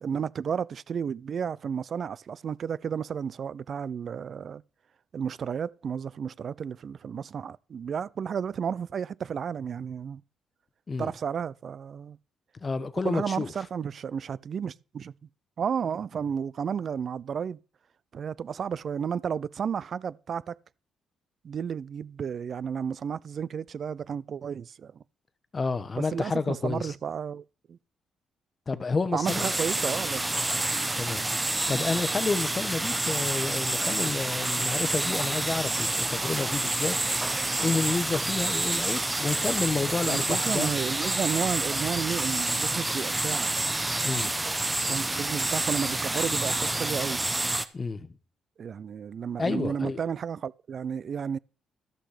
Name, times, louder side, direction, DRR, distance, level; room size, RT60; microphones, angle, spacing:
voice 1, 0.0-4.6 5.1-10.2 11.0-12.2 13.0-15.1 15.6-17.6 18.1-20.6 21.4-25.0 26.0-27.4 27.7-27.8 29.1-30.3 40.0-43.5 44.9-47.2 48.6-51.4, right 7 dB, 50° right, 0.4 m, -32 dB
voice 2, 12.6-13.5 25.5-26.9 28.7-29.5 30.4-30.5 31.0-31.2 31.7-37.0 37.6-40.7 44.0-44.3 47.7-48.1 49.4-50.0, left 4 dB, 30° left, 1.0 m, -30 dB
sound 1, 29.2-47.6, right 2 dB, 15° right, 0.8 m, -28 dB
13.5 x 6.2 x 4.9 m
cardioid pair, 90°, 0 cm